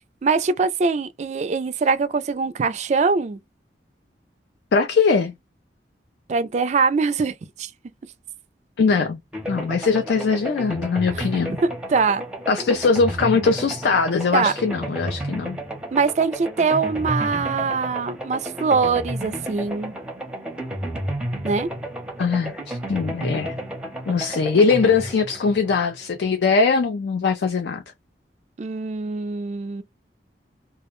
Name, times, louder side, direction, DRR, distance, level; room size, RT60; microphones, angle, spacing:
voice 1, 0.2-3.4 6.3-7.7 11.6-12.3 14.3-14.5 15.9-19.9 21.4-21.7 28.6-29.8, right 4 dB, 40° right, 0.3 m, -22 dB
voice 2, 4.7-5.3 8.8-9.2 9.5-11.6 12.5-15.6 22.2-23.5 24.1-27.8, left 4 dB, 75° left, 0.4 m, -21 dB
sound 1, 9.3-26.3, right 1 dB, 5° right, 0.6 m, -32 dB
2.3 x 2.1 x 2.9 m
head